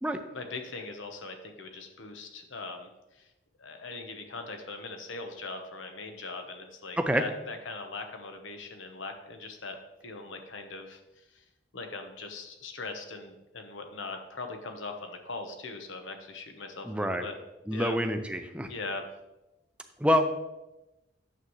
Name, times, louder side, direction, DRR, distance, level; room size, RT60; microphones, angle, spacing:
voice 1, 0.3-3.3 3.6-9.8 10.0-11.4 11.7-17.4 17.7-18.0 18.6-19.0, left 3 dB, 80° left, 5 dB, 1.0 m, -40 dB
voice 2, 16.9-17.3 17.7-18.7 20.0-20.3, equal, 5° right, 6 dB, 0.5 m, -27 dB
9.0 x 7.1 x 3.1 m, 0.97 s
head